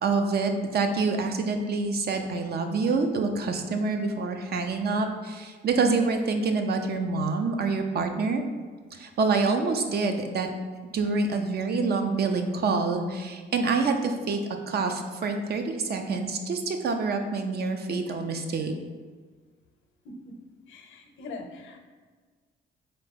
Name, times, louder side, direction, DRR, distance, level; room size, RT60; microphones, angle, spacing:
voice 1, 0.0-8.4 8.9-10.5 10.8-14.4 14.7-18.7, right 4 dB, 55° right, 6 dB, 0.6 m, -26 dB
voice 2, 20.7-21.8, left 3 dB, 75° left, 4 dB, 0.7 m, -42 dB
3.7 x 3.3 x 4.1 m, 1.5 s
cardioid pair, 90°, 20 cm